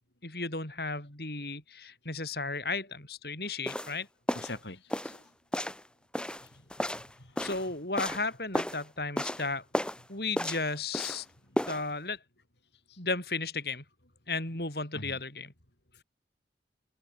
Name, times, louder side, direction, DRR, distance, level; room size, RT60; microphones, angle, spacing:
voice 1, 0.2-4.1 7.4-9.6 10.1-11.3 11.7-12.2 13.0-13.8 14.3-15.5, left 3 dB, 60° left, 6.2 m, -34 dB
sound 1, 3.7-3.9 4.3-4.6 4.9-5.2 5.5-5.8 6.1-7.7 8.0-8.3 8.5-8.8 9.2-9.5 9.7-10.0 10.4-11.2 11.6-11.8, equal, 5° left, 7.7 m, -33 dB
voice 2, 4.3-5.2 6.5-6.6 6.9-7.4 12.9-13.0 14.9-15.2, left 2 dB, 75° left, 5.5 m, -44 dB
head